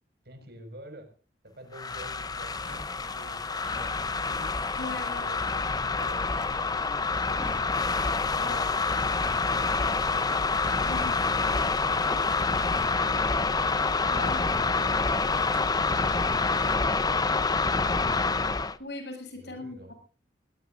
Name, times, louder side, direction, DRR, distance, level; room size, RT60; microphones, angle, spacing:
voice 1, 0.2-1.1 1.4-4.5 5.0-7.9 8.4-10.5 11.1-13.6 14.3-15.1 19.3-19.9, right 1 dB, 60° right, 7 dB, 5.6 m, -48 dB
sound 1, 1.7-18.8, left 4 dB, 20° left, 0.8 m, -27 dB
sound 2, 2.5-16.8, equal, 5° right, 1.6 m, -48 dB
voice 2, 4.8-5.4 8.3-8.7 10.8-11.3 14.1-14.7 18.8-19.9, left 2 dB, 65° left, 4 dB, 7.3 m, -39 dB
21.0 x 20.0 x 2.6 m, 0.36 s
head